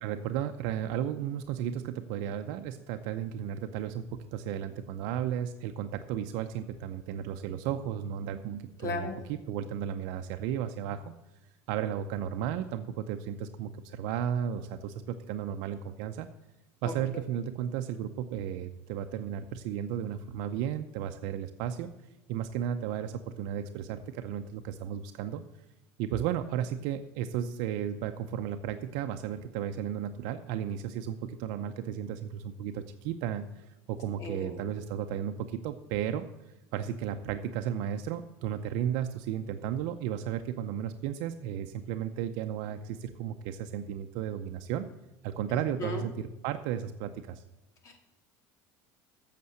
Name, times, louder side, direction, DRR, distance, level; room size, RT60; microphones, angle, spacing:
voice 1, 0.0-11.1 11.7-16.3 16.8-21.9 22.3-25.4 26.0-36.3 36.7-44.9 45.2-47.4, right 9 dB, 70° right, 7 dB, 0.6 m, -34 dB
voice 2, 8.8-9.2 16.8-16.9 34.2-34.6 45.5-46.0 47.8-48.0, left 3 dB, 40° left, 4 dB, 2.3 m, -37 dB
8.5 x 6.7 x 7.8 m, 0.99 s
cardioid pair, 150°, 8 cm